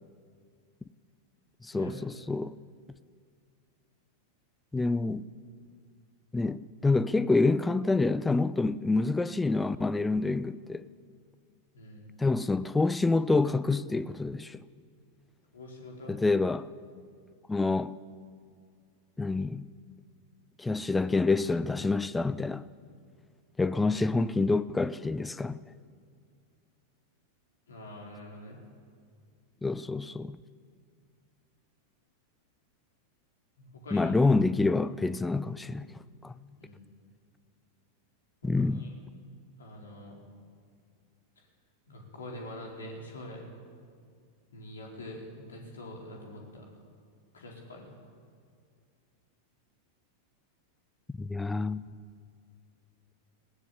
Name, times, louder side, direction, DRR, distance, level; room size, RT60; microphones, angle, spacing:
voice 1, 1.6-2.6 4.7-5.3 6.3-10.9 12.2-14.6 16.1-16.7 17.5-18.0 19.2-19.7 20.6-22.6 23.6-25.6 29.6-30.4 33.9-35.9 36.2-36.3 38.4-38.9 51.1-51.9, left 3 dB, 10° left, 0.5 m, -27 dB
voice 2, 11.7-12.1 15.5-16.2 27.7-28.6 33.6-34.2 36.6-36.8 38.4-38.9 39.6-40.2 41.9-43.5 44.5-46.7 47.3-47.9, left 1 dB, 70° left, 4.6 m, -45 dB
19.5 x 17.5 x 8.3 m
figure-of-eight pair, 90°, 0 cm